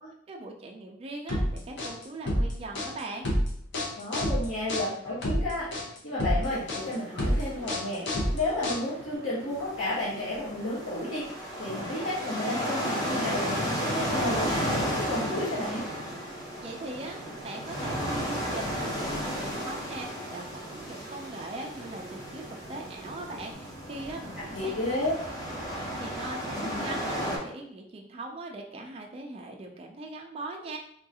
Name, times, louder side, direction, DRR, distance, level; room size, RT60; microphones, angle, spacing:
voice 1, 0.3-3.3 16.6-24.8 25.7-30.8, right 2 dB, 30° right, 1 dB, 0.3 m, -40 dB
sound 1, 1.3-9.1, equal, 60° left, 0.8 m, -29 dB
voice 2, 4.0-5.7 6.0-8.0 8.3-11.3 11.6-15.9 24.5-25.1, left 1 dB, 80° left, -10 dB, 1.0 m, -32 dB
sound 2, 6.4-23.5, right 2 dB, 60° right, 0.8 m, -48 dB
sound 3, 9.5-27.4, equal, 20° left, 0.8 m, -33 dB
3.6 x 2.3 x 2.7 m, 0.68 s
head